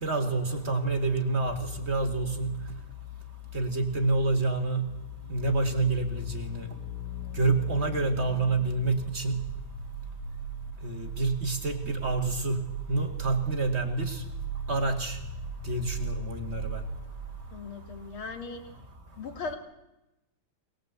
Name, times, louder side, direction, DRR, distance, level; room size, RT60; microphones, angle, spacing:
voice 1, 0.0-2.5 3.5-4.8 5.3-6.7 7.3-9.4 10.8-12.6 12.9-14.2 14.7-15.2 15.6-16.8, right 3 dB, 35° right, 3 dB, 1.1 m, -28 dB
sound 1, 0.8-18.4 18.6-18.7, equal, 70° left, 5.8 m, -39 dB
voice 2, 17.5-18.6 19.2-19.6, left 4 dB, 40° left, 5 dB, 2.7 m, -38 dB
22.5 x 21.5 x 8.1 m, 0.94 s
omnidirectional pair, 4.3 m